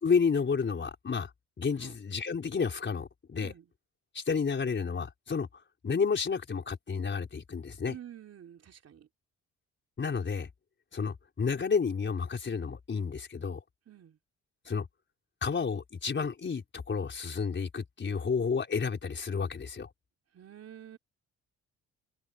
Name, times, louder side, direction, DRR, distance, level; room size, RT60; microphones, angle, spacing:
voice 1, 0.0-1.3 1.6-3.5 4.1-5.5 5.8-8.0 10.0-10.5 10.9-13.6 14.7-14.9 15.4-19.9, left 5 dB, 40° left, 4.6 m, -31 dB
voice 2, 3.4-3.7 7.9-9.1 13.9-14.2 20.3-21.0, right 10 dB, 55° right, 3.3 m, -49 dB
cardioid pair, 90°, 30 cm